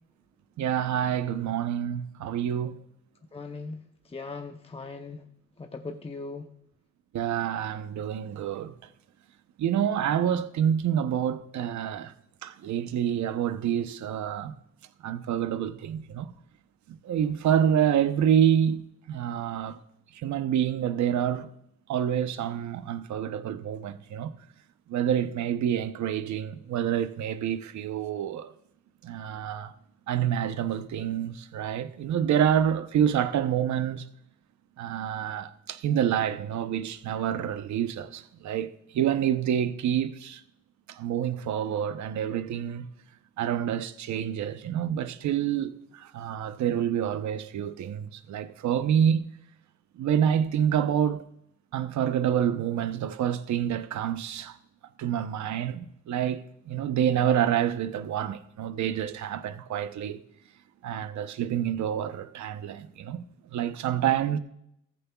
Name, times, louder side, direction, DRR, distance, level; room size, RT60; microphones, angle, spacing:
voice 1, 0.6-2.8 7.1-8.7 9.6-12.1 12.4-14.6 15.0-16.3 16.9-19.8 20.1-21.5 21.9-24.3 24.9-28.5 29.0-29.7 30.1-34.1 34.8-40.4 40.9-42.9 43.4-49.3 50.0-51.2 51.7-54.6 55.0-60.2 60.8-63.2 63.5-64.4, right 9 dB, 70° right, 0.9 m, -27 dB
voice 2, 3.3-5.2 5.6-6.5, left 3 dB, 20° left, 0.8 m, -39 dB
14.5 x 14.0 x 2.4 m
cardioid pair, 90°, 30 cm